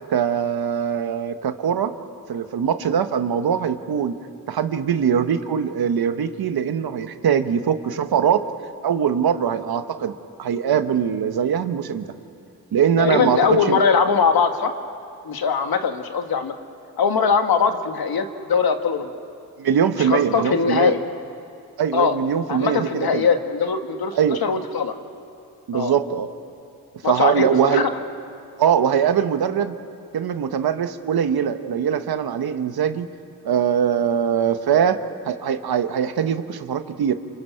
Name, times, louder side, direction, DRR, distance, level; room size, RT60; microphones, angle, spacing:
voice 1, 0.1-1.9 2.3-4.2 4.5-8.4 8.8-10.1 10.4-12.1 12.7-13.8 19.6-20.9 21.8-23.3 24.1-24.4 25.7-26.3 27.0-27.8 28.6-29.7 30.1-33.1 33.4-35.0 35.3-37.1, right 8 dB, 80° right, 9 dB, 1.3 m, -22 dB
voice 2, 13.0-14.7 15.3-16.5 17.0-19.1 20.0-21.0 21.9-22.2 22.5-24.9 25.7-25.9 27.0-27.9, left 6 dB, 75° left, 6 dB, 1.8 m, -21 dB
28.0 x 26.0 x 5.8 m, 2.5 s
cardioid pair, 55°, 37 cm